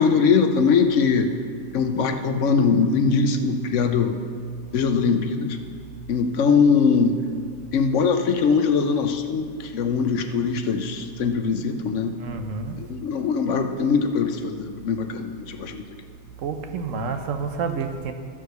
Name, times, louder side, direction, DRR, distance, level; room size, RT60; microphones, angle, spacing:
voice 1, 0.0-1.3 1.7-4.2 4.7-5.6 6.1-7.2 7.7-12.2 12.8-15.8, left 5 dB, 65° left, 8 dB, 1.0 m, -21 dB
voice 2, 12.2-12.8 16.4-18.1, right 5 dB, 70° right, 6 dB, 1.2 m, -29 dB
13.5 x 4.9 x 6.5 m, 2.2 s
omnidirectional pair, 1.5 m